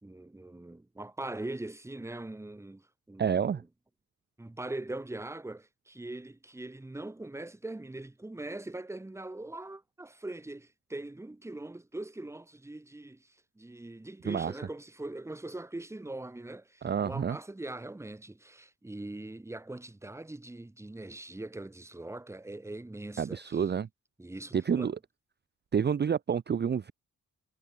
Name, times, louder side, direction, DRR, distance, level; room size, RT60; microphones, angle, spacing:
voice 1, 0.0-3.6 4.4-23.6 24.2-24.9, right 2 dB, 10° right, 1.1 m, -42 dB
voice 2, 3.2-3.6 14.3-14.5 16.8-17.4 23.2-23.9 24.5-25.0 25.7-26.9, right 7 dB, 30° right, 0.6 m, -28 dB
cardioid pair, 110°, 35 cm